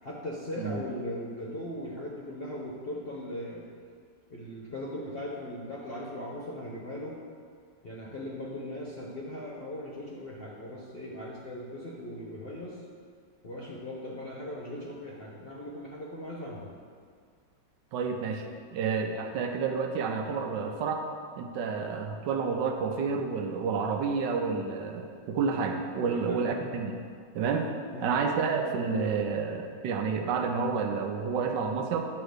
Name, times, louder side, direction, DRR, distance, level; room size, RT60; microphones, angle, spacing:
voice 1, 0.0-3.7 4.3-7.1 7.8-12.8 13.4-16.7 26.0-26.4 27.9-28.2, left 1 dB, 45° left, -4 dB, 0.8 m, -39 dB
voice 2, 17.9-18.5 18.7-21.1 21.4-27.0 27.3-27.7 28.0-32.0, right 5 dB, 80° right, 4 dB, 1.3 m, -30 dB
8.7 x 3.0 x 6.4 m, 2.1 s
omnidirectional pair, 1.9 m